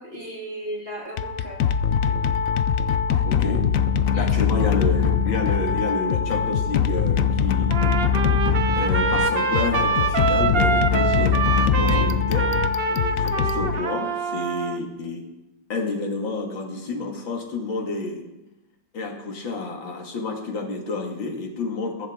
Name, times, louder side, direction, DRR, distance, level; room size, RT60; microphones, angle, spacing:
voice 1, 0.0-1.6 4.1-4.6 11.8-12.2, right 1 dB, 30° right, -2 dB, 2.9 m, -35 dB
sound 1, 1.1-14.3, left 7 dB, 65° left, 0.8 m, -22 dB
voice 2, 3.2-3.6 4.1-7.7 8.4-15.2 15.7-18.2 18.9-22.1, left 3 dB, 85° left, 1 dB, 2.8 m, -30 dB
Trumpet, 7.7-14.8, right 6 dB, 55° right, 0.6 m, -25 dB
22.0 x 11.0 x 3.7 m, 0.95 s
omnidirectional pair, 2.0 m